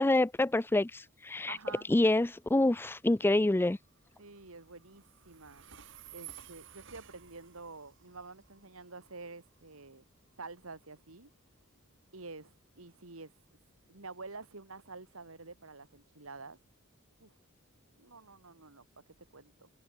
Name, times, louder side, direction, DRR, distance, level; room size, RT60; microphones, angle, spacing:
voice 1, 0.0-1.6 1.9-3.8, left 2 dB, 10° left, 0.4 m, -27 dB
Train, 1.3-16.0, right 10 dB, 65° right, 3.0 m, -57 dB
voice 2, 1.5-1.9 4.2-5.6 6.1-10.0 10.4-11.3 12.1-13.3 13.9-16.6 17.2-17.4 18.0-19.7, right 3 dB, 80° right, 2.5 m, -48 dB
head